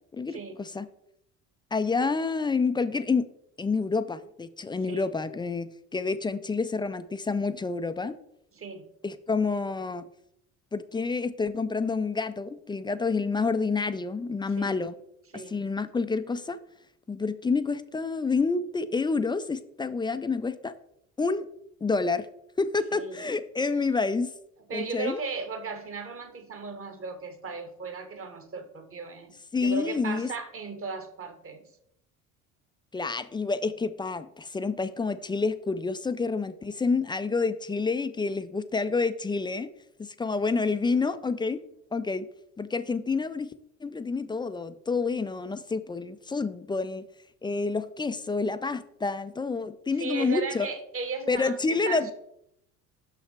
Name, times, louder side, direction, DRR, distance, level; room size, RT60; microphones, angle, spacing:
voice 1, 0.1-0.9 1.7-3.2 3.6-8.1 9.0-10.1 10.7-14.9 15.3-16.6 17.1-20.7 21.2-21.5 21.8-22.3 22.6-24.3 24.7-25.2 29.5-30.3 32.9-39.7 40.0-41.6 41.9-42.3 42.6-43.5 43.8-47.0 47.4-50.7 51.3-52.1, left 4 dB, 15° left, 11 dB, 0.3 m, -28 dB
voice 2, 8.5-8.8 14.6-14.8 15.3-15.6 22.9-23.3 24.7-31.6 50.0-52.1, right 4 dB, 35° right, 7 dB, 1.2 m, -36 dB
6.3 x 5.8 x 3.3 m, 0.76 s
hypercardioid pair, 70°, 39 cm